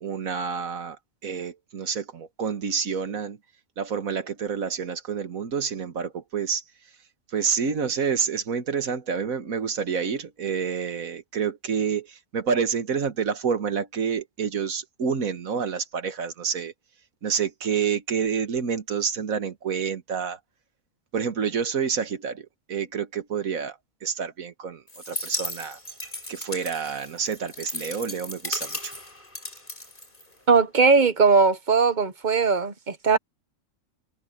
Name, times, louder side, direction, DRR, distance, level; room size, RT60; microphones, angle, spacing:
voice 1, 0.0-1.0 1.2-3.4 3.8-6.6 7.3-16.7 17.2-20.4 21.1-25.8 26.3-28.9, right 6 dB, 80° right, 1.8 m, -28 dB
sound 1, 24.9-30.6, left 1 dB, 35° left, 5.1 m, -36 dB
voice 2, 30.5-33.2, right 4 dB, 40° right, 0.9 m, -19 dB
omnidirectional pair, 1.4 m